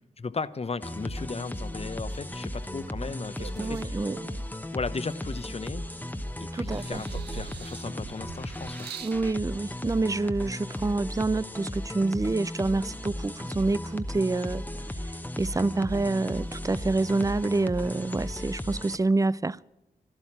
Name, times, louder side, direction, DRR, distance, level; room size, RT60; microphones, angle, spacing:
voice 1, 0.0-4.1 4.7-5.8 6.4-8.9, left 4 dB, 35° left, 0.8 m, -36 dB
sound 1, 0.8-19.0, left 1 dB, 10° left, 1.0 m, -36 dB
sound 2, 2.7-4.5 5.1-6.2 6.6-9.2 10.1-10.2, right 11 dB, 80° right, 0.4 m, -45 dB
voice 2, 3.6-4.2 6.5-7.0 9.0-14.7 15.4-19.6, right 3 dB, 20° right, 0.4 m, -27 dB
12.0 x 12.0 x 8.6 m
cardioid pair, 45°, 17 cm